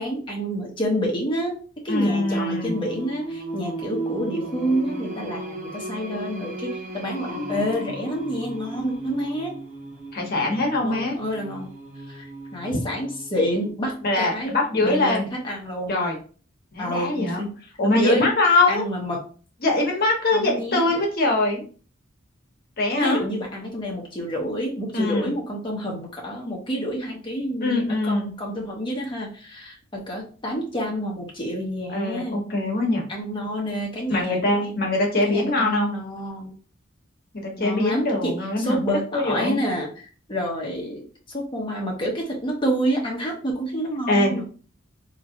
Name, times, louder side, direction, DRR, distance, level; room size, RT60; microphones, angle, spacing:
voice 1, 0.0-1.5 1.8-9.6 10.8-11.7 12.1-12.3 12.5-14.5 14.8-15.9 16.8-17.5 18.0-18.3 18.7-19.2 20.3-21.0 23.0-32.4 33.1-34.7 35.2-36.5 37.6-44.4, equal, 25° left, -1 dB, 1.1 m, -28 dB
voice 2, 1.9-2.7 10.1-11.2 14.0-15.3 15.9-16.2 16.7-17.4 17.8-18.8 19.6-21.6 22.8-23.2 24.9-25.3 27.6-28.3 31.9-33.0 34.1-35.9 37.3-38.8 39.1-39.6 44.1-44.4, left 2 dB, 50° left, 0 dB, 1.2 m, -22 dB
Singing, 1.9-13.7, right 2 dB, 40° right, 0.8 m, -35 dB
4.0 x 3.0 x 2.9 m, 0.39 s
head